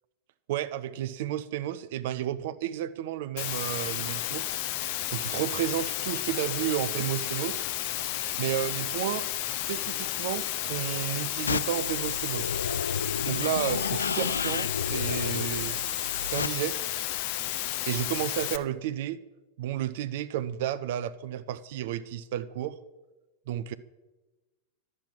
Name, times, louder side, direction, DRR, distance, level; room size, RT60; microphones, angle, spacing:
voice 1, 0.5-4.5 5.1-7.7 8.4-12.5 13.3-15.8 16.2-16.9 17.8-19.2 19.6-22.8 23.5-23.7, right 11 dB, 55° right, 13 dB, 0.5 m, -32 dB
Water, 3.4-18.6, left 14 dB, 50° left, 0.8 m, -32 dB
sound 1, 11.5-16.5, left 6 dB, 70° left, 0.3 m, -32 dB
11.5 x 7.7 x 7.5 m, 1.1 s
figure-of-eight pair, 90°, 0 cm